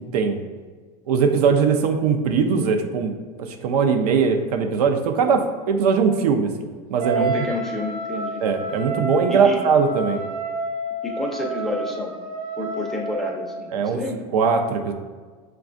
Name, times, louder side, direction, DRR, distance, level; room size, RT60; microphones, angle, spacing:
voice 1, 1.1-3.1 3.4-6.5 6.9-7.5 8.4-10.2 13.7-14.0 14.3-14.9, right 5 dB, 85° right, 5 dB, 0.5 m, -20 dB
Wind instrument woodwind instrument, 7.0-13.6, right 2 dB, 60° right, 1.1 m, -29 dB
voice 2, 7.1-8.4 9.3-9.6 11.0-12.2 12.6-14.2, left 1 dB, ahead, -1 dB, 0.4 m, -30 dB
6.0 x 2.3 x 2.4 m, 1.5 s
supercardioid pair, 135°, 19 cm